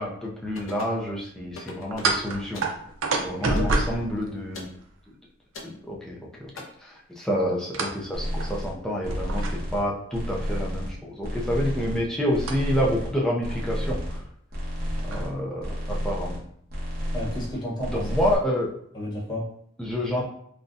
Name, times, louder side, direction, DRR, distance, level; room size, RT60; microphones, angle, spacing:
voice 1, 0.0-2.6 3.2-4.7 5.6-6.5 6.8-14.2 15.0-16.4 17.9-18.7 19.8-20.2, equal, 5° left, -3 dB, 0.5 m, -28 dB
sound 1, 0.6-1.0 1.5-2.2 2.5-2.8 3.6-3.8 4.5-4.8 5.5-5.8 6.6-6.7, left 2 dB, 75° left, 0.6 m, -40 dB
sound 2, 1.9-4.9 7.7-8.0 8.4-8.5 9.1-9.9 12.4-12.5 13.5-13.6 13.9-14.1 14.7-15.3, right 2 dB, 75° right, 0.5 m, -28 dB
voice 2, 3.4-3.9 17.1-18.2 18.9-19.5, equal, 20° left, -6 dB, 1.0 m, -32 dB
sound 3, 8.1-8.7 9.0-9.8 10.1-10.9 11.2-12.0 12.3-13.1 13.4-14.2 14.5-15.3 15.6-16.4 16.7-17.5 17.8-18.4, equal, 45° right, 1.0 m, -31 dB
3.8 x 2.2 x 2.6 m, 0.67 s
head